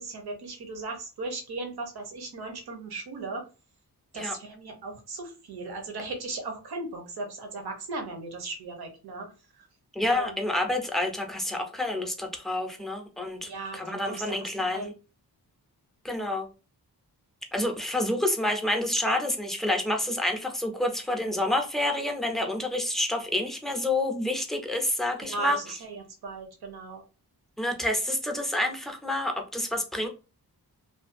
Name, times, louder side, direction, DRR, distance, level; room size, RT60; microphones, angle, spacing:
voice 1, 0.0-3.5 4.1-9.3 9.6-9.7 10.1-10.4 13.4-14.9 25.2-27.0, right 3 dB, 70° right, 4 dB, 0.8 m, -37 dB
voice 2, 9.9-14.9 16.0-16.5 17.5-25.6 27.6-30.1, left 1 dB, ahead, 2 dB, 0.4 m, -28 dB
2.5 x 2.2 x 2.5 m, 0.33 s
wide cardioid pair, 110°, 39 cm